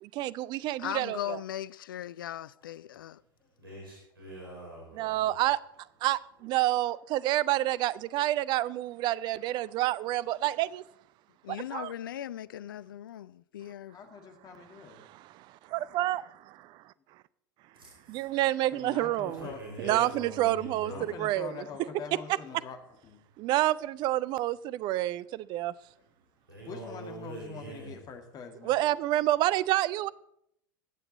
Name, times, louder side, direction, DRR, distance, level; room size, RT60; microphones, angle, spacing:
voice 1, 0.0-1.4 4.9-5.6 6.0-10.8 11.5-11.9 15.0-16.2 18.1-19.5 19.8-21.6 23.4-25.7 28.6-30.1, right 15 dB, 40° right, 0.4 m, -28 dB
voice 2, 0.8-3.2 11.4-14.0, left 11 dB, 65° left, 0.4 m, -38 dB
voice 3, 3.6-5.3 17.8-18.2 19.2-21.1 26.5-27.9, right 1 dB, 80° right, 4.5 m, -43 dB
voice 4, 13.9-15.1 15.6-15.7 18.7-19.6 20.9-23.2 26.7-28.7, left 6 dB, 35° left, 2.0 m, -44 dB
21.0 x 7.9 x 4.1 m
figure-of-eight pair, 80°, 12 cm